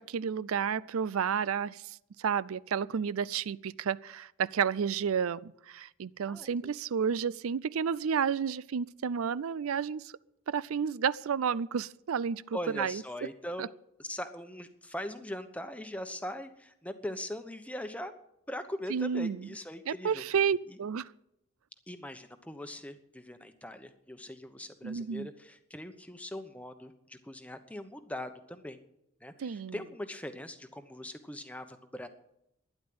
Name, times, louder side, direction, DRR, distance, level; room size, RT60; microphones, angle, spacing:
voice 1, 0.0-10.1 10.5-13.0 13.6-13.7 18.9-19.4 19.9-21.1 24.8-25.3 29.4-29.7, right 7 dB, 85° right, 0.4 m, -31 dB
voice 2, 6.3-6.7 12.5-13.7 14.0-18.1 18.5-20.2 20.7-20.8 21.9-28.8 29.2-32.1, left 1 dB, 5° left, 1.0 m, -41 dB
12.0 x 10.5 x 8.7 m
head